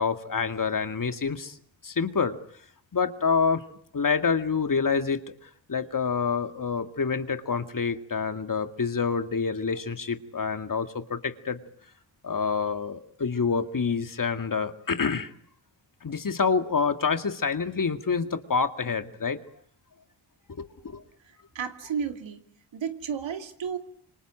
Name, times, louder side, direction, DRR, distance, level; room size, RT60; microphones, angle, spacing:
voice 1, 0.0-1.6 1.8-2.4 2.9-3.6 3.9-11.6 12.2-15.3 16.0-19.4 20.5-21.0, left 5 dB, 45° left, 9 dB, 2.2 m, -27 dB
voice 2, 21.5-22.4 22.7-23.8, right 7 dB, 70° right, 7 dB, 2.6 m, -32 dB
27.0 x 24.5 x 9.0 m, 0.65 s
supercardioid pair, 45°, 47 cm